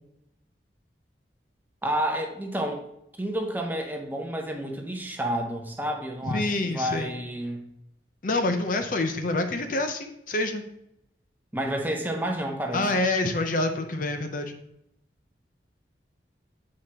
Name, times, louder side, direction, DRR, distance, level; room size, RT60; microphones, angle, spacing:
voice 1, 1.8-2.8 3.2-7.6 11.5-12.9, equal, 10° right, 2 dB, 0.7 m, -30 dB
voice 2, 6.2-7.1 8.2-10.6 12.7-14.5, left 2 dB, 50° left, 6 dB, 0.6 m, -27 dB
8.0 x 4.7 x 2.8 m, 0.79 s
head